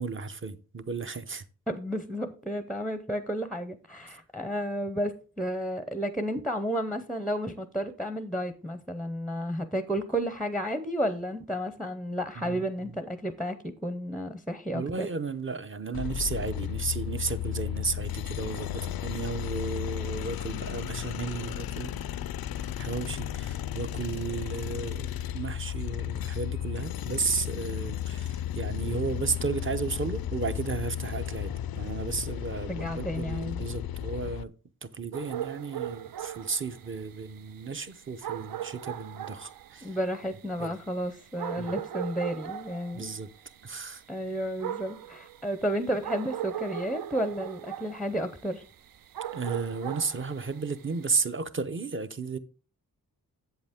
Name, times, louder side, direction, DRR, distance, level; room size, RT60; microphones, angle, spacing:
voice 1, 0.0-1.5 4.1-4.2 12.4-13.0 14.7-22.1 22.6-25.1 25.3-34.5 34.8-40.0 40.6-40.7 41.6-41.7 42.9-43.3 43.6-44.0 49.3-52.4, right 4 dB, 35° right, 0.7 m, -34 dB
voice 2, 1.7-15.1 32.7-33.6 39.8-43.1 44.1-48.6, equal, ahead, 0.6 m, -32 dB
sound 1, 15.9-34.4, left 11 dB, 85° left, 0.5 m, -34 dB
sound 2, 35.1-51.1, right 11 dB, 70° right, 0.5 m, -39 dB
8.0 x 7.9 x 3.5 m
wide cardioid pair, 150°, 35 cm